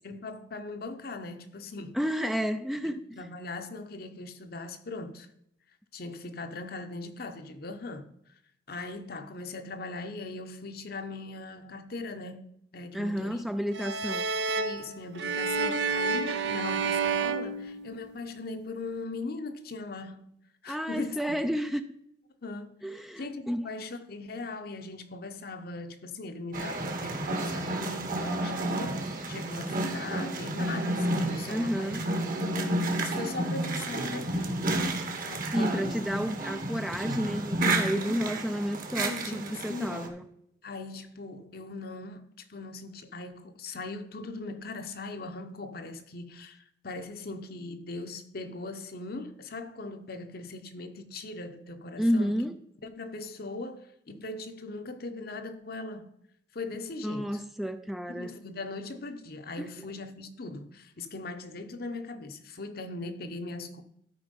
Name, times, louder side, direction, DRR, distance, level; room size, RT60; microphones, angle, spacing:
voice 1, 0.0-2.0 3.2-5.3 5.9-8.1 8.7-13.4 14.5-20.3 20.6-21.4 22.4-32.3 32.6-32.7 33.0-36.0 37.6-38.2 39.0-40.1 40.6-52.5 52.8-56.2 56.5-57.4 58.1-63.8, left 3 dB, 60° left, 0.9 m, -40 dB
voice 2, 1.9-3.2 12.9-14.3 20.7-21.8 22.8-23.7 31.5-32.0 35.5-40.2 52.0-52.6 57.0-58.3 59.6-59.7, equal, ahead, 0.4 m, -31 dB
sound 1, 13.7-18.3, right 4 dB, 70° right, 0.6 m, -30 dB
sound 2, 26.5-40.1, right 1 dB, 50° right, 1.3 m, -31 dB
12.5 x 4.5 x 5.3 m
head